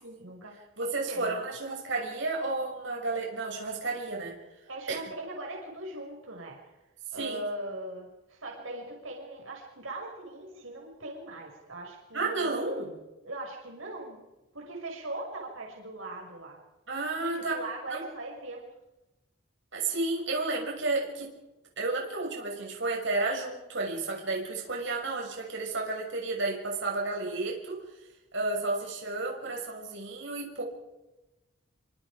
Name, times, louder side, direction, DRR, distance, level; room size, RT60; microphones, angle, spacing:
voice 1, 0.2-0.5 1.1-1.7 4.7-6.6 7.1-12.5 13.2-14.2 14.5-16.6 17.3-18.6, right 2 dB, 80° right, 0 dB, 6.1 m, -40 dB
voice 2, 0.8-4.3 4.9-5.0 7.1-7.4 12.1-13.0 16.9-17.6 17.9-18.0 19.7-21.3 21.8-27.8 28.3-30.6, right 3 dB, 65° right, -1 dB, 6.5 m, -32 dB
27.0 x 25.5 x 5.1 m, 1.0 s
head